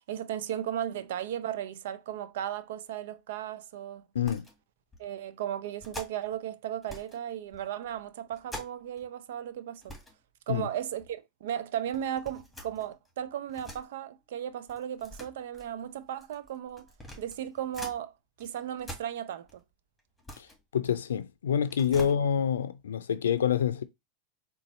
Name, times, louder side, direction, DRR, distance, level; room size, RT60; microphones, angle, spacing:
voice 1, 0.1-4.0 5.0-10.0 10.5-16.9 17.2-18.1 18.4-19.6 22.0-22.1, right 10 dB, 75° right, 0.4 m, -35 dB
voice 2, 4.1-4.5 10.5-10.7 20.4-20.5 20.7-23.8, left 8 dB, 85° left, 0.4 m, -27 dB
sound 1, 4.2-4.6 4.9-5.1 5.8-6.4 6.8-7.2 7.5-9.1 9.4-9.5 9.7-10.2 10.5-11.1 11.9-13.8 14.7-18.0 18.4-19.6 20.0-21.3 21.6-22.1, left 1 dB, 5° left, 1.6 m, -46 dB
3.9 x 2.3 x 4.2 m
hypercardioid pair, 100°, 0 cm